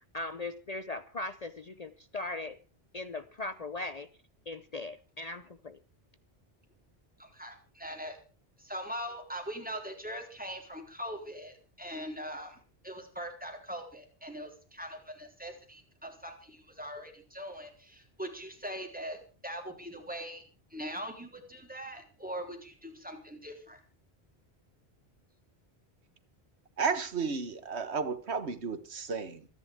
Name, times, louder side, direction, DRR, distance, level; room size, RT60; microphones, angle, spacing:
voice 1, 0.1-2.6 2.9-4.1 4.5-5.8, left 2 dB, 40° left, 0.8 m, -39 dB
voice 2, 7.2-8.2 8.6-12.6 12.8-19.2 19.4-20.4 20.7-23.8, equal, 10° right, 4.0 m, -41 dB
voice 3, 26.8-29.5, right 5 dB, 85° right, 1.7 m, -33 dB
27.0 x 10.5 x 3.6 m
omnidirectional pair, 1.1 m